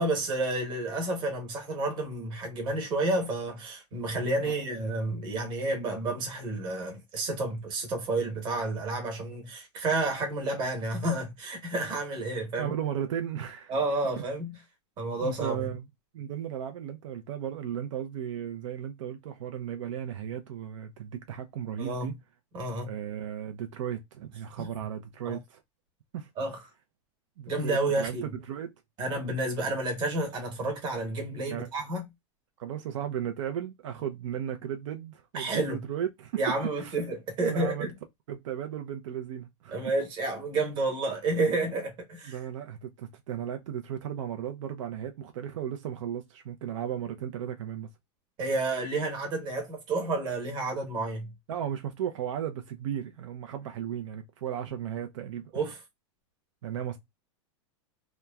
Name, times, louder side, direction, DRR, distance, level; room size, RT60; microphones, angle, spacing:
voice 1, 0.0-12.7 13.7-14.6 15.0-15.6 21.8-22.1 22.5-22.9 24.6-24.7 25.2-25.4 26.4-26.6 27.5-28.3 29.0-32.1 35.3-35.8 36.4-37.9 39.7-42.4 48.4-51.3 55.5-55.8, right 2 dB, 30° right, 1.1 m, -30 dB
voice 2, 12.6-13.7 15.2-15.9 16.1-22.1 22.8-25.6 26.1-26.3 27.4-28.2 28.5-28.7 31.5-31.7 32.6-36.4 36.7-37.0 37.4-37.9 38.3-39.8 42.3-47.9 51.5-55.5 56.6-57.0, right 9 dB, 80° right, 0.5 m, -35 dB
2.9 x 2.2 x 2.2 m
supercardioid pair, 165°, 16 cm